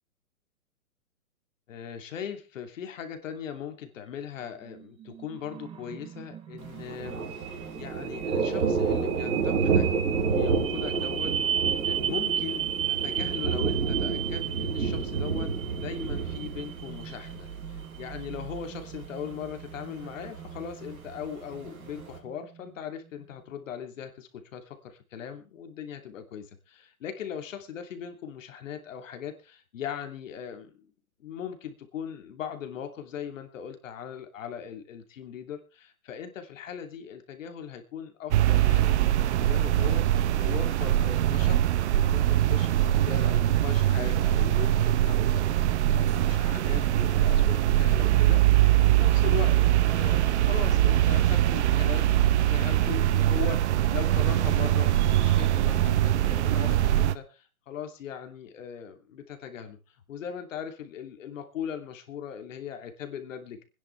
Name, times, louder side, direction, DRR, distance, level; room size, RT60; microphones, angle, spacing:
voice 1, 1.7-7.2 7.7-11.3 11.8-30.9 31.2-41.6 41.9-45.6 45.9-49.5 49.9-59.8 60.1-63.6, left 8 dB, 65° left, 6 dB, 2.9 m, -39 dB
sound 1, 4.6-22.7, right 10 dB, 15° right, 0.7 m, -35 dB
Thunder, 6.6-22.2, right 5 dB, 80° right, 4.4 m, -30 dB
sound 2, 38.3-57.2, right 12 dB, 55° right, 0.9 m, -22 dB
25.5 x 10.5 x 3.4 m, 0.31 s
hypercardioid pair, 130°, 42 cm